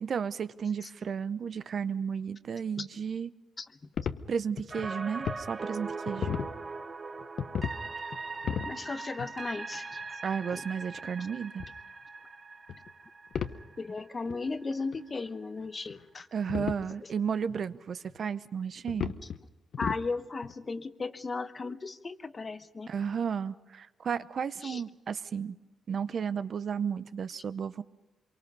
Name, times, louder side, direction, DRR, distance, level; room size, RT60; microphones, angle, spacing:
voice 1, 0.0-3.3 4.3-6.3 10.2-11.7 16.3-19.1 22.9-25.6 25.9-27.8, right 7 dB, 50° right, 14 dB, 0.7 m, -33 dB
sound 1, 4.0-5.4 5.8-6.5 7.2-7.8 8.1-8.7 9.2-9.3 10.5-10.6 11.6-11.7 12.7-12.9 13.3-13.6 14.0-14.1 14.3-14.4 14.9-15.0 15.6-16.0 16.5-16.9 17.5-17.6 18.1-18.2 18.9-19.4 19.7-20.1 20.4-20.5, left 7 dB, 65° left, 0.9 m, -34 dB
sound 2, 4.7-14.7 15.1-15.2, right 3 dB, 30° right, 0.9 m, -41 dB
voice 2, 8.6-10.0 10.5-10.6 13.8-16.3 19.8-22.9 24.6-24.8, left 3 dB, 30° left, 11 dB, 0.9 m, -36 dB
26.0 x 23.5 x 5.4 m, 1.0 s
cardioid pair, 125°, 0 cm